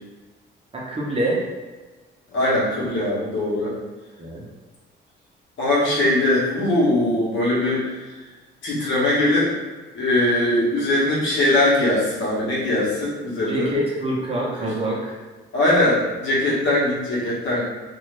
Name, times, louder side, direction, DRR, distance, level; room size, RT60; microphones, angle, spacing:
voice 1, 0.7-1.4 4.2-4.4 13.5-15.1, right 1 dB, 30° right, -5 dB, 0.9 m, -25 dB
voice 2, 2.3-3.7 5.6-8.2 8.6-9.5 9.9-13.8 14.6-14.7 15.5-17.6, left 1 dB, 70° left, -6 dB, 1.2 m, -21 dB
2.6 x 2.6 x 3.3 m, 1.2 s
cardioid pair, 90°, 20 cm